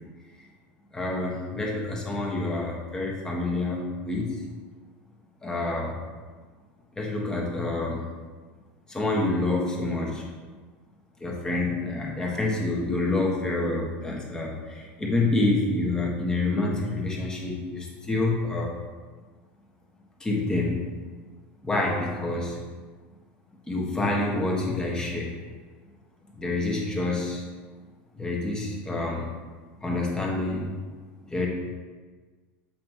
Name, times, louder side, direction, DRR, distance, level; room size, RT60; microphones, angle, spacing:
voice 1, 0.9-4.3 5.4-6.0 6.9-8.0 8.9-10.2 11.2-18.8 20.2-20.8 21.6-22.6 23.7-25.4 26.4-27.5 28.1-29.3 29.8-30.7 31.3-31.5, left 2 dB, 10° left, -2 dB, 1.5 m, -27 dB
7.5 x 5.2 x 3.1 m, 1.4 s
supercardioid pair, 120°, 6 cm